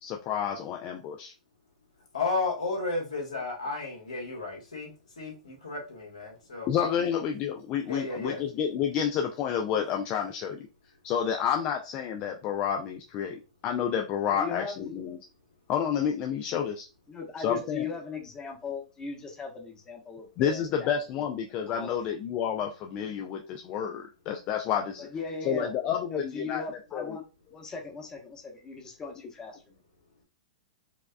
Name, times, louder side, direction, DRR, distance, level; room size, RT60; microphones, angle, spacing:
voice 1, 0.0-1.3 6.7-10.7 11.0-15.2 15.7-16.9 17.4-17.9 20.4-25.1 25.4-26.6 26.9-27.2, left 8 dB, 35° left, 0.4 m, -30 dB
voice 2, 2.1-6.7 7.8-8.4, left 3 dB, 85° left, 1.6 m, -33 dB
voice 3, 14.3-14.8 17.1-21.3 21.7-22.0 25.0-25.7 26.1-27.2 27.5-29.8, left 4 dB, 20° left, 1.0 m, -38 dB
4.8 x 2.3 x 2.2 m
hypercardioid pair, 110°, 4 cm